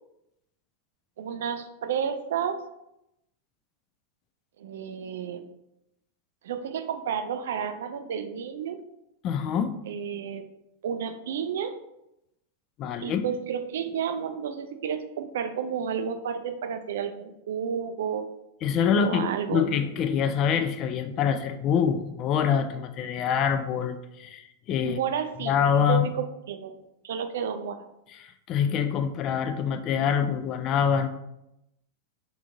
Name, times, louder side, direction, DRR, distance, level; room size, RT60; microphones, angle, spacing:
voice 1, 1.2-2.6 4.6-5.5 6.4-8.8 9.9-10.4 10.8-11.7 13.0-18.3 18.9-19.7 24.8-26.7 27.0-27.9, right 7 dB, 60° right, 9 dB, 0.3 m, -31 dB
voice 2, 9.2-9.7 12.8-13.2 18.6-25.0 25.4-26.1 28.2-31.1, left 7 dB, 35° left, 9 dB, 0.3 m, -25 dB
3.6 x 3.5 x 2.6 m, 0.85 s
figure-of-eight pair, 90°, 0 cm